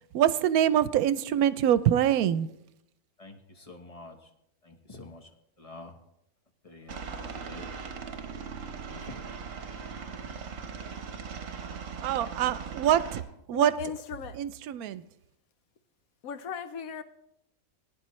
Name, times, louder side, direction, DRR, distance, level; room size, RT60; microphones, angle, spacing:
voice 1, 0.1-2.5 12.0-13.2 13.5-13.7 14.3-15.0, right 10 dB, 90° right, 1.1 m, -24 dB
voice 2, 3.2-4.2 4.6-5.3 5.6-5.9 6.6-7.7 8.9-9.2, left 2 dB, 25° left, 1.1 m, -47 dB
Aircraft, 6.9-13.2, right 5 dB, 65° right, 1.3 m, -39 dB
voice 3, 13.5-14.4 16.2-17.0, left 6 dB, 80° left, 1.2 m, -37 dB
18.5 x 9.9 x 3.1 m
omnidirectional pair, 1.5 m